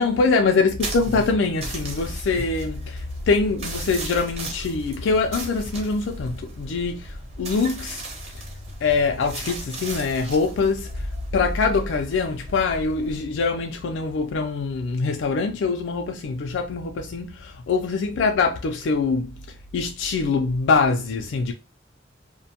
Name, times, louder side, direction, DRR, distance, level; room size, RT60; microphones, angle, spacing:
voice 1, 0.0-8.0 8.8-11.1 11.3-19.3 19.7-21.5, left 4 dB, 85° left, 0.4 m, -23 dB
sound 1, 0.8-13.2, right 1 dB, 35° right, 0.7 m, -35 dB
2.5 x 2.1 x 2.7 m
head